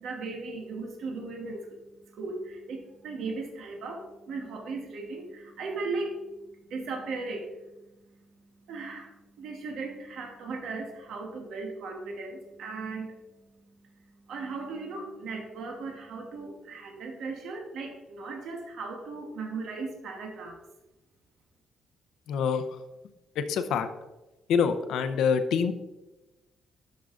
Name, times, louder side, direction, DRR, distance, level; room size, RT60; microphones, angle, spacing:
voice 1, 0.0-6.2 6.7-7.6 8.6-13.2 13.9-20.6, right 3 dB, 75° right, 2 dB, 1.2 m, -37 dB
voice 2, 22.3-22.6 23.4-23.9 24.5-25.7, left 6 dB, 80° left, 9 dB, 0.6 m, -25 dB
12.0 x 5.5 x 2.5 m, 1.0 s
cardioid pair, 90°, 0 cm